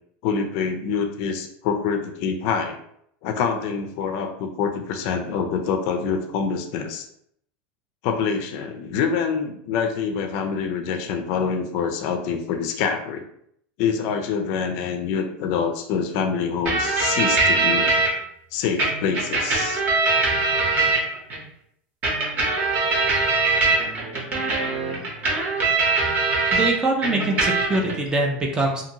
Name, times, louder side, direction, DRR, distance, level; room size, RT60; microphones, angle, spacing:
voice 1, 0.2-2.8 3.2-7.1 8.0-13.3 13.8-17.9 18.5-19.8, left 6 dB, 50° left, 6 dB, 0.4 m, -26 dB
sound 1, 16.7-18.1 18.8-21.4 22.0-26.7 27.0-27.9, right 3 dB, 30° right, 0.8 m, -22 dB
voice 2, 26.5-28.8, right 2 dB, 15° right, 1 dB, 0.4 m, -23 dB
2.6 x 2.5 x 2.8 m, 0.70 s
supercardioid pair, 160°, 6 cm